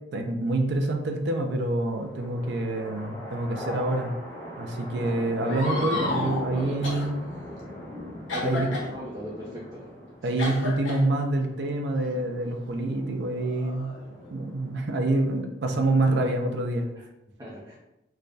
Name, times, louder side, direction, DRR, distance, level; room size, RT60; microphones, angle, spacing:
voice 1, 0.1-4.1 4.6-7.1 8.4-8.7 10.2-13.9 14.3-16.9, right 2 dB, 60° right, 3 dB, 0.4 m, -26 dB
sound 1, 1.9-14.9, left 1 dB, 15° left, 0.9 m, -40 dB
sound 2, 5.4-6.4 6.8-7.1 8.3-8.9 10.4-11.0 12.0-12.1 13.0-14.3, left 2 dB, 85° left, 1.1 m, -32 dB
voice 2, 5.7-6.1 6.5-6.8 8.3-9.9 10.2-10.3 17.0-17.1 17.4-17.8, equal, 20° right, -7 dB, 0.6 m, -37 dB
3.3 x 2.2 x 3.9 m, 0.91 s
head